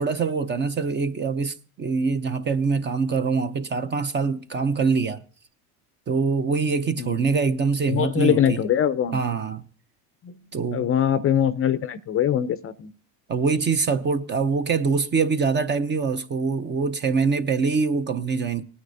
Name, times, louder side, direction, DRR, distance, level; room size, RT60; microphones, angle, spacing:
voice 1, 0.0-5.2 6.1-8.6 9.1-9.6 10.5-10.9 13.3-18.6, right 5 dB, 25° right, 0.6 m, -24 dB
voice 2, 7.9-9.2 10.2-10.3 10.7-12.9, left 9 dB, 30° left, 0.6 m, -22 dB
19.0 x 9.6 x 2.7 m
supercardioid pair, 115°, 45 cm